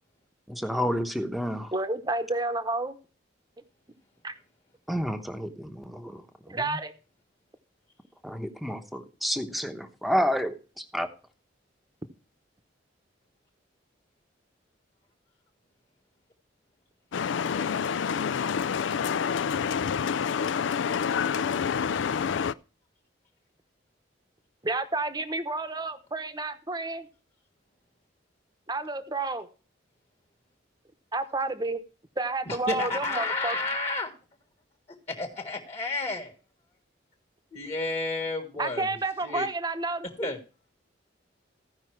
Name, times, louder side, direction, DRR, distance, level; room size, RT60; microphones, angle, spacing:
voice 1, 0.5-1.7 4.9-6.8 8.2-11.1, equal, ahead, 7 dB, 0.9 m, -30 dB
voice 2, 1.7-3.0 4.2-4.3 6.5-6.9 24.6-27.1 28.7-29.5 31.1-31.8 32.2-33.6 38.6-40.3, right 2 dB, 20° right, 9 dB, 0.9 m, -30 dB
sound 1, 17.1-22.5, left 7 dB, 75° left, 0.4 m, -28 dB
voice 3, 32.5-34.1 35.1-36.3 37.5-39.0 39.2-39.5 40.2-40.4, left 3 dB, 35° left, 2 dB, 1.6 m, -31 dB
15.0 x 5.4 x 4.6 m, 0.35 s
head